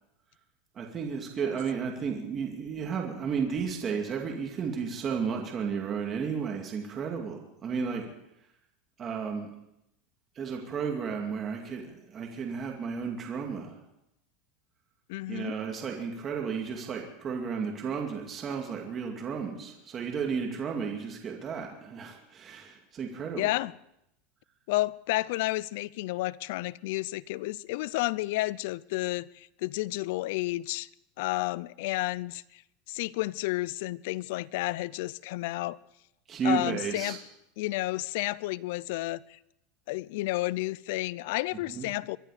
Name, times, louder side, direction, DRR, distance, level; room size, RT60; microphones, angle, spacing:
voice 1, 0.7-8.0 9.0-9.5 10.4-13.8 15.3-23.5 36.3-37.2 41.7-41.9, right 6 dB, 25° right, 2.4 m, -33 dB
voice 2, 15.1-15.6 23.4-23.7 24.7-30.9 31.2-32.6 32.9-35.8 36.4-37.2 37.6-39.4 39.9-42.2, left 19 dB, 65° left, 0.5 m, -31 dB
24.0 x 11.5 x 5.0 m
supercardioid pair, 145°, 0 cm